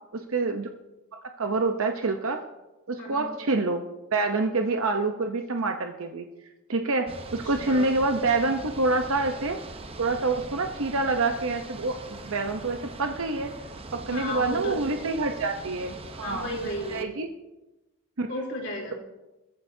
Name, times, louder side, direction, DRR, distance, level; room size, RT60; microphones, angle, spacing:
voice 1, 0.1-0.7 1.1-2.4 2.9-3.8 4.1-6.2 6.7-9.6 10.0-13.5 13.9-16.5 16.9-17.3 18.2-18.3, right 3 dB, 70° right, 5 dB, 0.8 m, -27 dB
voice 2, 3.0-3.4 7.6-7.9 14.1-14.8 16.2-17.1 18.3-18.9, left 1 dB, 50° left, -1 dB, 3.3 m, -33 dB
sound 1, 7.1-17.0, right 2 dB, 25° right, 0.8 m, -41 dB
20.5 x 14.5 x 2.7 m, 1.0 s
head